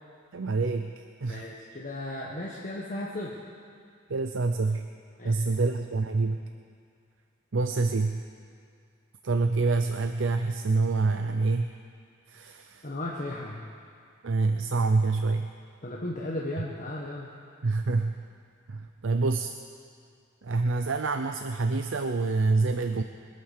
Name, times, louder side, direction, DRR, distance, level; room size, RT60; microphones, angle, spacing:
voice 1, 0.3-1.5 4.1-4.9 5.2-6.4 7.5-8.2 9.2-11.7 12.3-12.9 14.2-15.5 17.6-18.2 18.7-19.5 20.4-23.0, right 3 dB, 75° right, 7 dB, 0.6 m, -26 dB
voice 2, 1.3-3.4 5.2-5.7 12.8-13.7 15.8-17.3, left 1 dB, 40° left, -4 dB, 1.3 m, -35 dB
22.5 x 9.1 x 6.6 m, 2.2 s
head